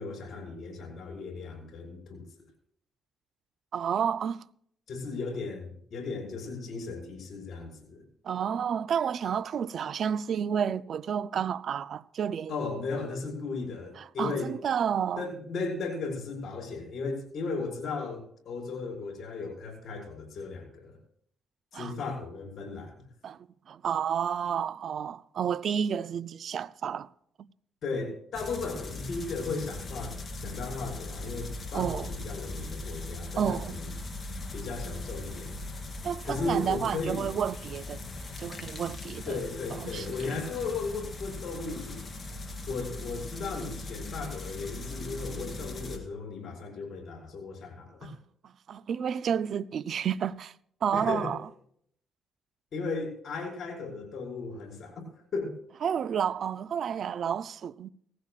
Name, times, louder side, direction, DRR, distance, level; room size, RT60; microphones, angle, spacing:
voice 1, 0.0-2.2 4.9-8.0 12.5-14.6 15.2-21.0 21.7-23.0 27.8-33.9 34.5-35.6 36.2-37.3 39.3-42.0 42.7-48.1 50.9-51.4 52.7-55.0 55.3-55.6, left 3 dB, 60° left, 5.6 m, -36 dB
voice 2, 3.7-4.4 8.2-12.5 14.0-15.2 21.7-21.9 23.2-23.4 23.7-27.1 27.4-27.5 31.7-32.1 33.4-33.8 36.0-38.0 38.4-39.4 39.8-40.4 48.0-48.2 48.7-50.5 50.8-51.4 55.8-57.9, right 8 dB, 60° right, 0.5 m, -30 dB
sound 1, 28.3-46.0, left 2 dB, 30° left, 3.2 m, -39 dB
18.5 x 16.0 x 2.5 m
cardioid pair, 90°, 0 cm